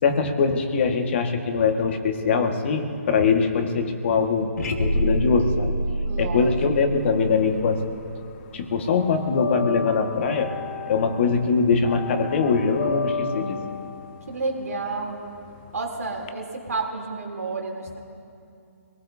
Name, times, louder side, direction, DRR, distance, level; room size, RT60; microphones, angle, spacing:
voice 1, 0.0-5.7 6.2-7.9 8.5-10.5 10.9-13.6, left 5 dB, 50° left, 5 dB, 1.7 m, -22 dB
sound 1, 4.6-8.7, right 1 dB, 80° left, 1.9 m, -27 dB
voice 2, 6.0-6.6 14.3-15.2 15.7-18.0, right 3 dB, 80° right, 0 dB, 3.3 m, -30 dB
sound 2, 7.0-8.1 8.4-16.3, left 5 dB, 35° left, 0.7 m, -33 dB
25.0 x 19.0 x 2.8 m, 2.6 s
hypercardioid pair, 145°, 8 cm